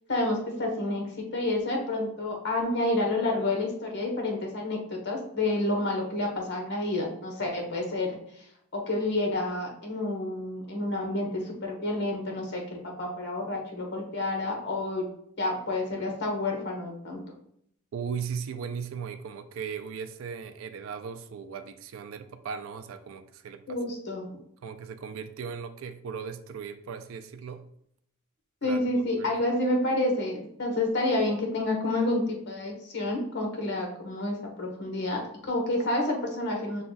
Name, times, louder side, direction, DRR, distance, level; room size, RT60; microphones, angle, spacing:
voice 1, 0.1-15.1 15.4-17.2 23.7-24.3 28.6-36.8, left 2 dB, 50° left, 1 dB, 1.2 m, -29 dB
voice 2, 17.9-23.8 24.6-27.7 28.6-28.8 29.1-29.3, right 6 dB, 65° right, 9 dB, 0.4 m, -37 dB
5.7 x 2.3 x 4.0 m, 0.70 s
head